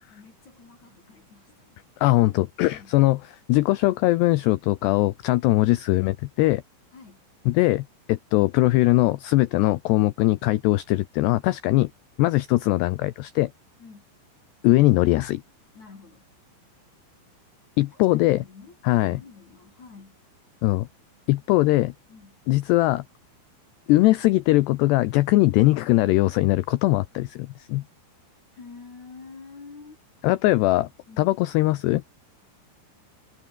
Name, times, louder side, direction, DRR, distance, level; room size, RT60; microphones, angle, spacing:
voice 1, 0.1-1.8 2.7-3.0 6.9-7.3 13.8-14.1 15.7-16.3 17.8-20.2 22.1-22.4 28.5-30.0 31.1-31.4, left 4 dB, 40° left, 5.5 m, -47 dB
voice 2, 2.0-3.2 3.5-6.6 7.5-11.9 12.2-13.5 14.6-15.4 17.8-18.4 18.8-19.2 20.6-20.9 21.3-21.9 22.5-23.0 23.9-27.8 30.2-30.9 31.2-32.0, left 18 dB, 80° left, 2.5 m, -21 dB
omnidirectional pair, 5.6 m